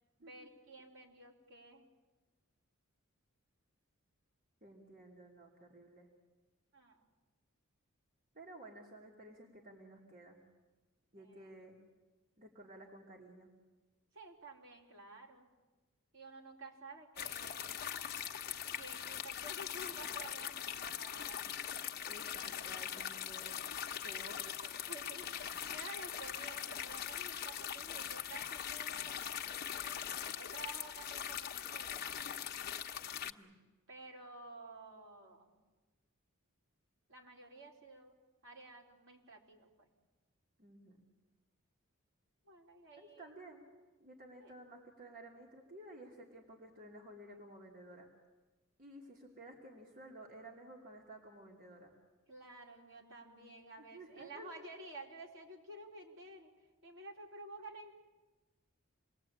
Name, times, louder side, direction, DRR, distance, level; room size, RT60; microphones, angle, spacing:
voice 1, 0.2-1.9 6.7-7.1 11.1-11.6 14.1-15.5 16.1-17.7 18.8-21.4 24.8-25.3 25.7-32.2 33.9-35.5 37.1-38.2 38.4-39.9 42.4-43.3 44.4-44.5 52.3-56.5 56.8-57.9, right 2 dB, 60° right, 0 dB, 4.4 m, -52 dB
voice 2, 4.6-6.1 8.3-10.4 11.1-11.8 12.4-13.5 22.0-23.6 23.9-24.7 33.2-33.6 40.6-41.0 43.0-43.7 44.0-48.1 48.8-51.9 53.9-54.7, right 1 dB, 40° right, -1 dB, 3.0 m, -54 dB
sound 1, 17.2-33.3, left 9 dB, 45° left, 1.0 m, -41 dB
28.0 x 21.0 x 8.7 m, 1.2 s
head